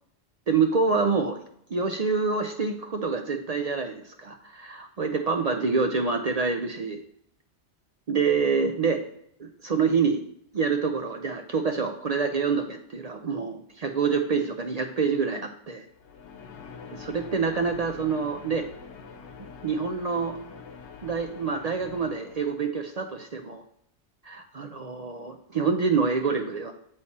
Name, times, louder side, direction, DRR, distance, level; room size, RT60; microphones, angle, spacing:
voice 1, 0.5-1.4 1.7-7.0 8.1-9.0 9.4-10.2 10.5-15.8 16.9-18.7 19.6-20.4 21.0-23.6 24.3-26.7, right 5 dB, 50° right, 5 dB, 0.5 m, -26 dB
sound 1, 15.9-22.8, left 5 dB, 85° left, 1.1 m, -45 dB
8.5 x 3.2 x 4.1 m, 0.71 s
omnidirectional pair, 1.1 m